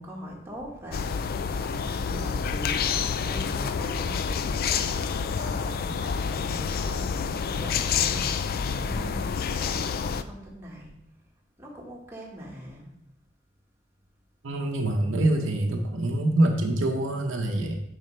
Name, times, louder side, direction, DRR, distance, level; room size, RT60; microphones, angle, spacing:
voice 1, 0.0-2.9 3.2-10.9 11.6-12.9, equal, 15° right, -3 dB, 1.5 m, -41 dB
sound 1, 0.9-10.2, left 6 dB, 50° left, 0.3 m, -28 dB
voice 2, 14.4-17.8, right 1 dB, 70° right, 3 dB, 0.8 m, -25 dB
7.4 x 5.1 x 3.2 m, 0.76 s
head